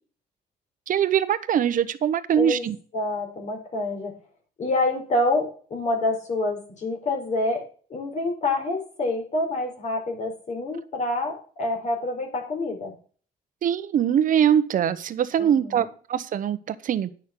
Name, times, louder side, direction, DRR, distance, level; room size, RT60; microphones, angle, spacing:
voice 1, 0.9-2.8 13.6-17.1, right 9 dB, 60° right, 13 dB, 1.0 m, -22 dB
voice 2, 2.4-2.7 2.9-4.1 4.6-7.6 7.9-12.9 15.4-15.8, left 2 dB, 50° left, 2 dB, 4.6 m, -27 dB
10.5 x 6.4 x 6.0 m, 0.42 s
cardioid pair, 120°, 16 cm